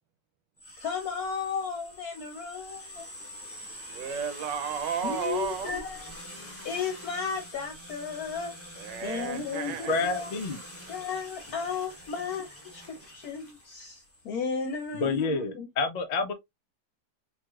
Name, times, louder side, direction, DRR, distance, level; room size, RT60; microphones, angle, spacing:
sound 1, 0.6-15.2, equal, 10° left, 1.0 m, -45 dB
voice 1, 0.8-3.1 5.0-6.0 6.6-8.5 9.0-10.3 10.9-15.7, left 6 dB, 65° left, 1.1 m, -34 dB
voice 2, 3.9-5.9 8.8-10.1 12.9-13.0, right 7 dB, 90° right, 1.4 m, -33 dB
voice 3, 9.9-10.6 15.0-16.3, left 3 dB, 90° left, 0.3 m, -28 dB
4.6 x 3.1 x 2.4 m
omnidirectional pair, 1.9 m